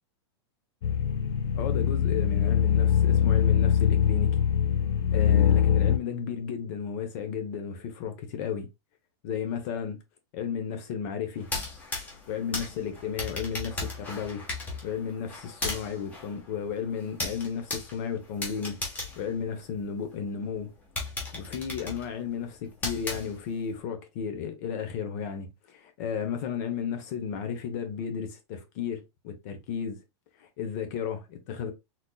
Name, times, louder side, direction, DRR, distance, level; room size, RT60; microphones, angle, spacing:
sound 1, 0.8-6.0, left 8 dB, 70° left, 0.6 m, -23 dB
voice 1, 1.5-4.4 5.1-8.7 9.2-10.0 10.3-11.5 12.3-14.4 14.8-18.8 19.2-20.7 21.3-30.0 30.4-31.7, left 7 dB, 40° left, 0.9 m, -33 dB
sound 2, 11.4-20.1 20.5-20.6 21.0-23.7, left 2 dB, 10° left, 1.1 m, -37 dB
4.3 x 4.0 x 2.3 m
supercardioid pair, 180°, 14 cm